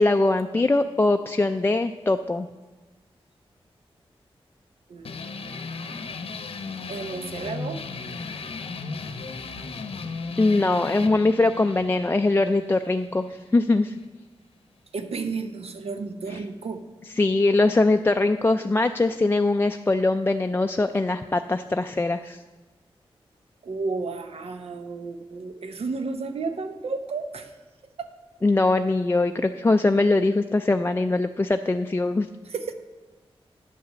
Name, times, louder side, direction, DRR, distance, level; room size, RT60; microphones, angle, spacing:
voice 1, 0.0-2.5 9.7-9.8 10.4-13.9 16.3-16.4 17.2-22.4 28.4-32.3, left 2 dB, 20° left, 6 dB, 0.3 m, -22 dB
voice 2, 4.9-5.2 5.6-5.7 6.9-7.8 14.9-16.9 23.6-27.5 28.0-28.1 32.5-32.7, right 4 dB, 85° right, 8 dB, 0.8 m, -32 dB
sound 1, 5.1-14.1, left 4 dB, 75° left, 0.8 m, -36 dB
9.5 x 5.8 x 7.5 m, 1.2 s
wide cardioid pair, 100°, 10 cm